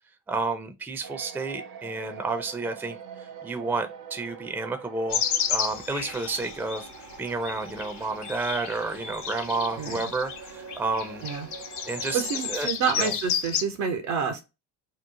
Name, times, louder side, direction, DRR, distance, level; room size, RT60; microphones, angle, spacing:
voice 1, 0.3-5.2 5.5-6.9 7.2-11.3 11.9-12.2 12.5-12.7 13.0-13.1, right 3 dB, 5° right, 0.5 m, -31 dB
sound 1, 1.0-12.7, right 6 dB, 45° right, 0.6 m, -44 dB
sound 2, 5.1-13.6, left 8 dB, 55° left, 0.9 m, -32 dB
voice 2, 12.1-14.4, right 6 dB, 75° right, 0.8 m, -28 dB
3.1 x 2.0 x 3.6 m
hypercardioid pair, 55°, 49 cm